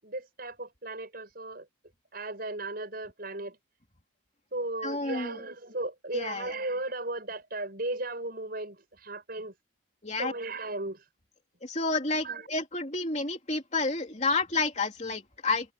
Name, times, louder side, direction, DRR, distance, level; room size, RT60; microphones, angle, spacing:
voice 1, 0.0-1.7 2.1-3.6 4.5-9.5 10.2-11.0 12.2-12.4, right 2 dB, 45° right, 7.2 m, -36 dB
voice 2, 4.8-5.4 6.1-6.5 10.0-10.3 11.6-15.7, left 3 dB, 35° left, 3.2 m, -30 dB
head